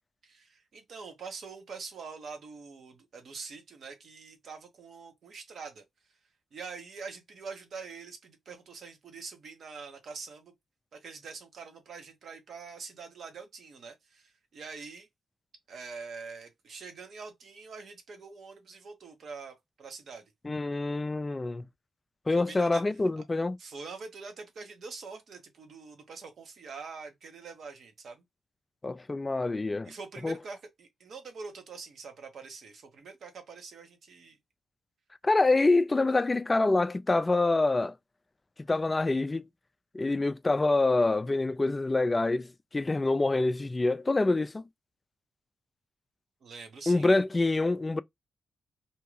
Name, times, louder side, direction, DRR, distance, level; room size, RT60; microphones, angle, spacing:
voice 1, 0.2-5.8 6.5-10.5 10.9-15.1 15.7-20.3 22.3-22.8 23.6-28.2 29.8-34.4 46.4-47.1, right 4 dB, 65° right, 1.0 m, -44 dB
voice 2, 20.4-21.7 22.3-23.6 28.8-29.9 30.2-30.4 35.2-37.9 38.7-39.5 39.9-44.6 46.9-48.0, left 2 dB, 25° left, 0.3 m, -26 dB
2.7 x 2.4 x 3.1 m
cardioid pair, 65°, 0 cm